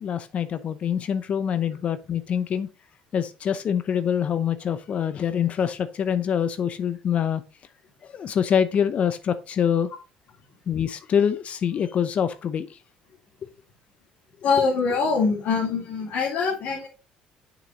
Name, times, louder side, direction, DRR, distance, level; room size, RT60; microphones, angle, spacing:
voice 1, 0.0-2.7 3.1-7.4 8.1-9.9 10.7-12.7, left 8 dB, 50° left, 0.7 m, -25 dB
voice 2, 14.4-16.9, left 5 dB, 70° left, 2.8 m, -23 dB
7.1 x 6.0 x 3.7 m
supercardioid pair, 85°, 3 cm